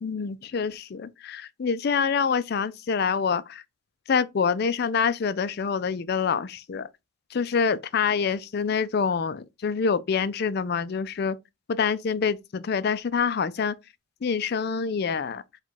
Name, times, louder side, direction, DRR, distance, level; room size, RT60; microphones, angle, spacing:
voice 1, 0.0-3.6 4.1-6.9 7.3-11.4 11.7-13.7 14.2-15.4, left 6 dB, 50° left, 0.4 m, -26 dB
4.9 x 2.3 x 4.1 m
head